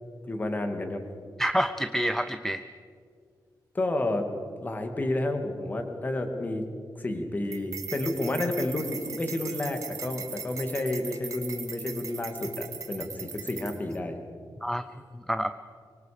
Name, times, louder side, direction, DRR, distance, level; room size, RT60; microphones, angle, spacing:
voice 1, 0.3-1.0 3.7-4.3 4.6-6.6 7.0-14.2, left 2 dB, 25° left, 5 dB, 2.0 m, -30 dB
voice 2, 1.4-2.6 14.6-14.8 15.3-15.5, equal, 5° left, 10 dB, 0.5 m, -27 dB
sound 1, 7.5-14.0, right 6 dB, 45° right, 1.6 m, -39 dB
24.5 x 23.5 x 5.1 m, 2.2 s
wide cardioid pair, 175°, 7 cm